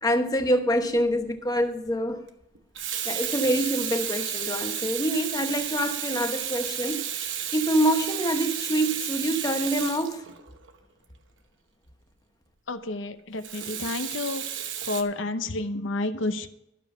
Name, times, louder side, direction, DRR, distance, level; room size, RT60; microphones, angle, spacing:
voice 1, 0.0-2.2 3.0-10.3, equal, 20° left, 6 dB, 1.0 m, -26 dB
Water tap faucet / Sink (filling or washing), 1.0-1.2 2.5-10.7 13.4-15.0, right 9 dB, 75° right, 1.0 m, -32 dB
voice 2, 12.7-14.5 14.8-16.5, left 2 dB, 80° left, 9 dB, 0.8 m, -30 dB
12.5 x 7.1 x 5.5 m, 0.88 s
head